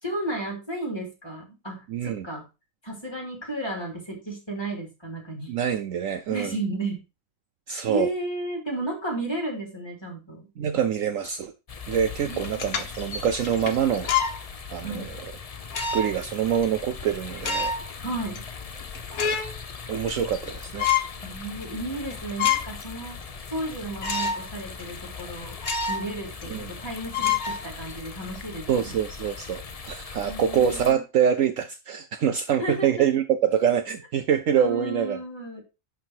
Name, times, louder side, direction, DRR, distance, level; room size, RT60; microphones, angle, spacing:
voice 1, 0.0-2.5 2.8-5.5 6.3-7.0 7.9-10.5 12.2-12.9 14.8-15.1 18.0-18.4 21.2-23.2 23.5-25.6 25.9-28.9 30.3-31.0 32.6-33.0 34.6-35.6, right 1 dB, 15° left, 3.1 m, -33 dB
voice 2, 1.9-2.3 5.5-6.5 7.7-8.1 10.6-11.5 11.9-14.1 14.7-15.1 15.8-17.7 19.9-20.9 26.5-26.7 28.7-35.2, right 8 dB, 65° right, 0.9 m, -25 dB
sound 1, 11.7-30.9, left 5 dB, 45° left, 0.5 m, -40 dB
sound 2, 12.4-14.4 14.9-15.1 15.7-16.3 16.6-16.7 17.3-17.9 18.3-18.4 18.8-19.6 19.9-20.5 20.8-21.1 21.6-21.7 22.1-22.8 23.2-23.3 24.0-24.5 24.8-24.9 25.6-26.1 26.4-26.5 27.1-28.1, left 6 dB, 65° left, 1.5 m, -27 dB
11.0 x 3.9 x 4.5 m
omnidirectional pair, 1.6 m